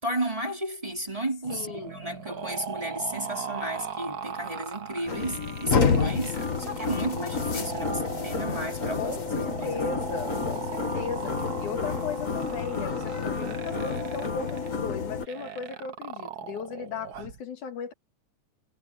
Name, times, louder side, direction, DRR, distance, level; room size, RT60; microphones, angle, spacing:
voice 1, 0.0-9.8, right 1 dB, 10° right, 4.7 m, -33 dB
sound 1, 1.4-17.4, right 7 dB, 55° right, 1.1 m, -38 dB
voice 2, 1.5-1.9 9.0-17.9, left 5 dB, 80° left, 3.6 m, -36 dB
sound 2, 5.1-15.3, left 5 dB, 40° left, 1.3 m, -29 dB
omnidirectional pair, 3.4 m